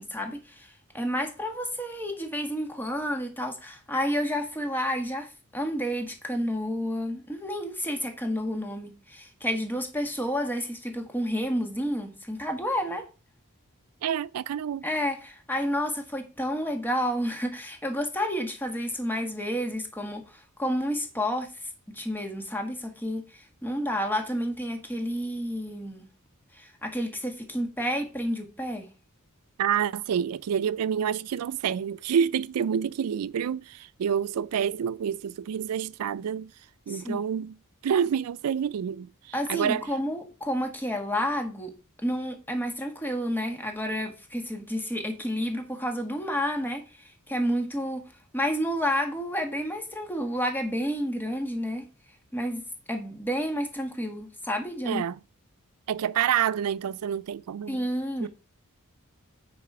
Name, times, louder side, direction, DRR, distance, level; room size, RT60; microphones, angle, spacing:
voice 1, 0.0-13.0 14.8-20.2 20.6-21.5 21.9-26.1 26.5-28.9 36.9-37.2 39.3-41.7 42.0-51.9 52.3-55.0 57.7-58.3, equal, 10° left, 1.3 m, -30 dB
voice 2, 14.0-14.8 29.6-36.5 36.9-37.6 37.8-39.9 54.8-55.2 55.9-57.8 58.2-58.3, right 8 dB, 90° right, 0.4 m, -28 dB
9.4 x 4.0 x 4.7 m
head